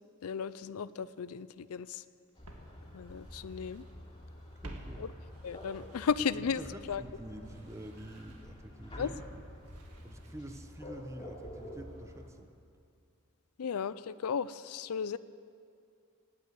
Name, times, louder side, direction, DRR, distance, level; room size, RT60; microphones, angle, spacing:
voice 1, 0.2-2.0 2.9-3.8 5.0-5.1 5.4-6.6 6.9-7.0 9.0-9.1 13.6-15.2, left 6 dB, 75° left, 16 dB, 0.4 m, -35 dB
Walk footsteps, 1.7-1.8 2.5-3.9 4.2-6.5 6.9-10.9 11.2-11.3, right 1 dB, 85° right, 1.8 m, -53 dB
sound 1, 2.4-12.3, equal, 20° left, 3.0 m, -49 dB
voice 2, 4.6-5.0 6.5-9.5 10.0-12.5, right 1 dB, 15° right, 7 dB, 0.9 m, -47 dB
18.0 x 9.5 x 8.1 m, 2.4 s
head